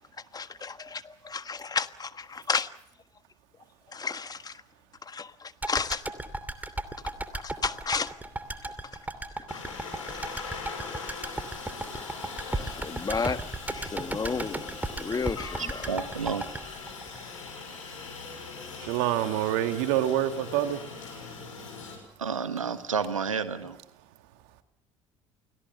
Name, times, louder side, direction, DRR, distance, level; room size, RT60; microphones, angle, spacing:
voice 1, 0.3-2.7 3.9-4.6 5.0-6.0 7.3-8.2 8.8-9.0 9.5-9.6 10.1-10.7 11.0-11.1 12.5-13.4 13.7-15.9, left 5 dB, 25° left, 1.5 m, -33 dB
sound 1, 5.6-17.8 18.1-18.2, right 2 dB, 10° right, 2.8 m, -36 dB
Aircraft, 9.5-21.9, left 4 dB, 80° left, 5.7 m, -41 dB
voice 2, 15.9-16.4 22.2-23.8, right 6 dB, 85° right, 1.5 m, -30 dB
voice 3, 18.8-21.7 21.9-22.1 24.0-24.6, right 12 dB, 65° right, 2.2 m, -29 dB
29.5 x 18.5 x 6.7 m
figure-of-eight pair, 60°, 16 cm